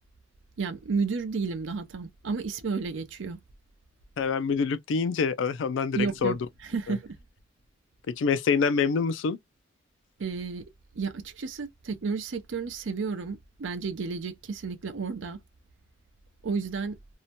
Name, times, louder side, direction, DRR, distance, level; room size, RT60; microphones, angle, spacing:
voice 1, 0.6-3.4 5.9-7.2 10.2-10.7 10.9-15.4 16.4-17.0, right 4 dB, 75° right, 0.6 m, -32 dB
voice 2, 4.2-6.3 6.9-7.0 8.1-9.4, left 5 dB, 70° left, 0.3 m, -26 dB
2.7 x 2.1 x 2.7 m
head